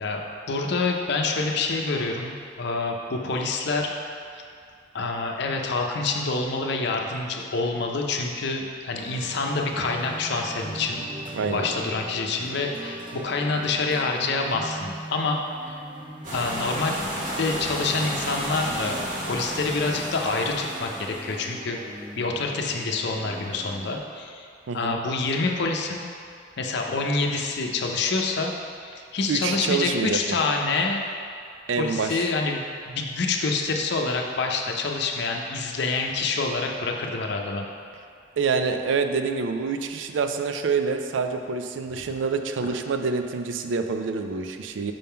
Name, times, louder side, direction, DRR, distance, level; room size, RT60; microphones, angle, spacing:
voice 1, 0.0-4.0 4.9-11.1 11.5-15.8 16.3-17.0 17.4-21.8 22.2-24.5 24.7-26.0 26.6-28.5 28.8-31.0 31.7-37.7 42.6-42.7, left 3 dB, 65° left, 1 dB, 0.6 m, -27 dB
sound 1, 9.0-24.0, right 1 dB, 25° right, 0.6 m, -40 dB
voice 2, 11.3-11.7 24.7-25.0 29.3-30.4 31.7-32.3 38.4-44.9, right 5 dB, 85° right, 6 dB, 0.4 m, -26 dB
sound 2, 16.2-21.4, equal, 45° right, 1.2 m, -32 dB
5.3 x 3.6 x 5.6 m, 2.3 s
head